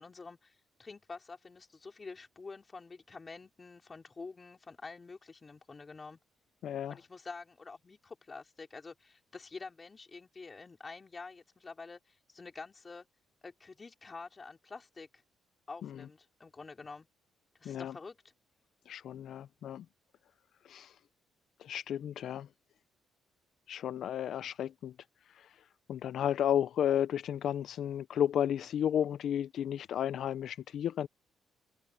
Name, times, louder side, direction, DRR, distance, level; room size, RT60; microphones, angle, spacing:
voice 1, 0.0-6.2 6.9-13.1 13.4-15.2 15.7-17.1 17.6-18.2, left 4 dB, 30° left, 4.4 m, -48 dB
voice 2, 6.6-7.0 15.8-16.0 17.6-17.9 18.9-19.9 20.6-21.0 21.6-22.5 23.7-24.9 25.3-31.1, left 10 dB, 70° left, 0.5 m, -33 dB
cardioid pair, 90°, 0 cm